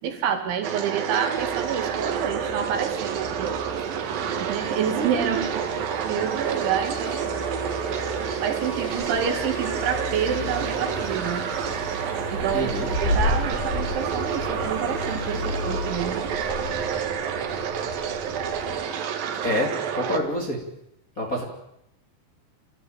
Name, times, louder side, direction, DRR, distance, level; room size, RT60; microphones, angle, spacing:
voice 1, 0.0-3.6 4.4-7.3 8.4-11.5 12.3-12.7 13.0-16.2, right 8 dB, 75° right, 6 dB, 4.6 m, -28 dB
sound 1, 0.6-20.2, right 8 dB, 60° right, 2.8 m, -29 dB
Car passing by, 1.4-18.8, left 2 dB, 45° left, 6.3 m, -34 dB
voice 2, 12.5-12.9 19.4-20.6 21.2-21.4, left 1 dB, 25° left, 0 dB, 2.4 m, -27 dB
28.0 x 14.5 x 9.0 m, 0.84 s
omnidirectional pair, 5.5 m